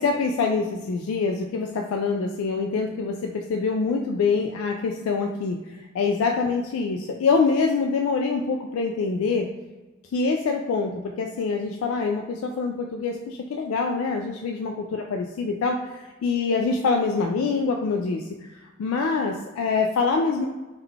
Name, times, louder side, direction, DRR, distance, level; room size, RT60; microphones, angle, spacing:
voice 1, 0.0-9.5 10.1-18.2 18.8-20.5, left 4 dB, 90° left, 2 dB, 0.3 m, -25 dB
3.6 x 2.3 x 3.3 m, 1.2 s
head